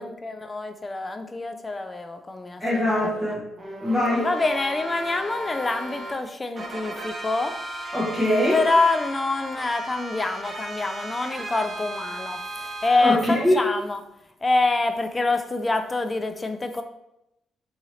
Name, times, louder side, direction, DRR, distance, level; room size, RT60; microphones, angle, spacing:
voice 1, 0.0-3.4 4.2-7.6 8.5-14.0 14.4-16.8, left 3 dB, 25° left, 8 dB, 0.3 m, -26 dB
voice 2, 2.6-3.4 3.8-4.2 7.9-8.6 13.0-13.1 13.4-13.6, left 1 dB, ahead, -9 dB, 1.1 m, -22 dB
sound 1, 3.6-6.1 6.6-13.1, right 1 dB, 25° right, 0.8 m, -36 dB
3.6 x 2.8 x 3.1 m, 0.84 s
cardioid pair, 90°, 0 cm